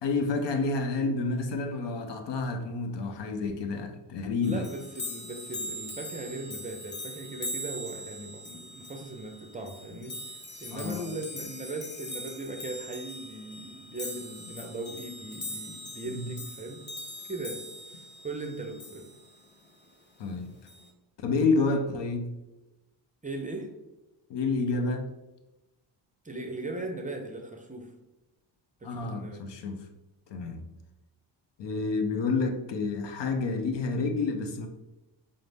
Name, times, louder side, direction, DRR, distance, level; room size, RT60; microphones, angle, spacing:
voice 1, 0.0-4.7 9.9-10.0 10.7-11.1 16.1-16.3 20.2-20.6 21.2-22.3 24.3-25.1 28.8-29.8 30.3-30.6 31.6-34.7, left 3 dB, 65° left, 6 dB, 0.7 m, -29 dB
sound 1, 4.4-19.4 20.7-20.9, left 1 dB, 25° left, 0.7 m, -41 dB
voice 2, 4.4-10.2 10.6-16.8 17.3-17.6 17.9-19.0 23.2-23.7 26.2-27.9 28.8-29.4 30.5-30.7, right 2 dB, 15° right, 3 dB, 0.5 m, -38 dB
5.0 x 2.0 x 3.3 m, 1.0 s
cardioid pair, 80°, 47 cm